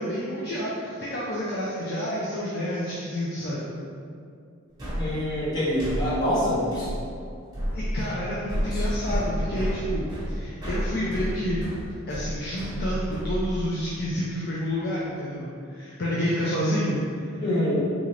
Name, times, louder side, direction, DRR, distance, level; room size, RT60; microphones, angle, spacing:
voice 1, 0.0-3.7 7.7-11.7 12.1-17.3, equal, 50° left, -7 dB, 0.4 m, -29 dB
sound 1, 4.8-13.9, equal, 20° right, 0.9 m, -31 dB
voice 2, 5.0-6.9 8.7-8.8 17.4-17.7, equal, 20° left, -9 dB, 0.9 m, -25 dB
3.8 x 2.4 x 3.2 m, 2.4 s
head